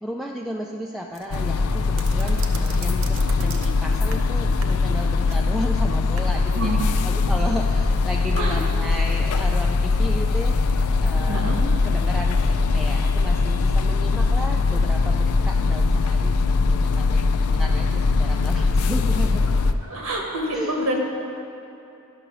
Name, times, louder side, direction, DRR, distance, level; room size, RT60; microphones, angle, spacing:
voice 1, 0.0-11.5 11.8-19.5 20.5-20.8, equal, ahead, 0 dB, 0.3 m, -34 dB
sound 1, 1.1-6.3, right 4 dB, 60° right, 0.7 m, -39 dB
sound 2, 1.3-19.7, left 3 dB, 80° left, 0.4 m, -21 dB
voice 2, 11.3-11.6 19.9-21.0, right 1 dB, 85° right, 0 dB, 1.5 m, -26 dB
11.0 x 5.9 x 6.0 m, 2.8 s
head